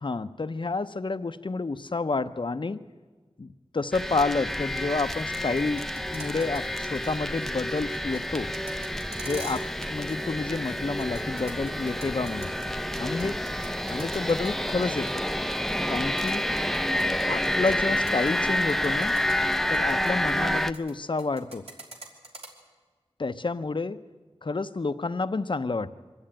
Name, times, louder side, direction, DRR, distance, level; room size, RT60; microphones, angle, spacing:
voice 1, 0.0-2.8 3.4-5.8 6.1-8.6 9.2-12.5 13.0-13.4 13.9-15.2 15.9-16.5 17.3-19.2 19.7-21.6 23.2-24.0 24.4-25.9, left 3 dB, 50° left, 12 dB, 0.7 m, -29 dB
sound 1, 3.9-20.7, left 1 dB, 5° left, 0.5 m, -29 dB
sound 2, 5.1-6.7 6.9-7.1 7.4-10.3 10.5-12.7 13.0-17.7 18.0-18.3 18.7-20.9 21.2-22.5, right 2 dB, 80° right, 3.0 m, -44 dB
24.0 x 12.5 x 8.8 m, 1.4 s
wide cardioid pair, 65°, 10 cm